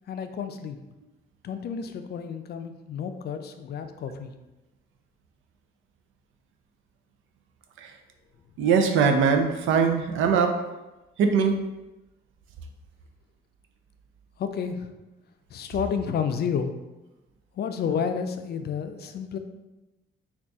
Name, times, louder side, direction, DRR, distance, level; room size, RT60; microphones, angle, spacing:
voice 1, 0.1-0.8 1.4-4.3 14.4-14.9 15.5-16.7 17.6-19.4, left 7 dB, 55° left, 8 dB, 0.4 m, -30 dB
voice 2, 8.6-10.6 11.2-11.6, right 6 dB, 85° right, 5 dB, 0.5 m, -21 dB
3.9 x 2.4 x 3.5 m, 1.0 s
cardioid pair, 90°, 20 cm